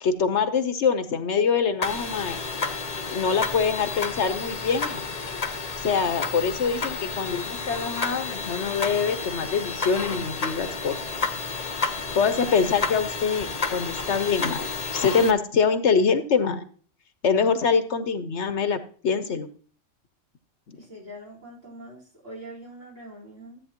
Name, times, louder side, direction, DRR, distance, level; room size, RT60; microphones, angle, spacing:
voice 1, 0.0-2.4 3.1-5.0 5.8-11.0 12.1-16.6 17.2-18.8 19.0-19.5, left 5 dB, 60° left, 11 dB, 1.1 m, -24 dB
sound 1, 1.8-15.3, left 4 dB, 35° left, 1.0 m, -31 dB
voice 2, 20.7-23.6, right 1 dB, 65° right, -3 dB, 4.4 m, -43 dB
13.5 x 8.4 x 2.9 m, 0.43 s
omnidirectional pair, 1.4 m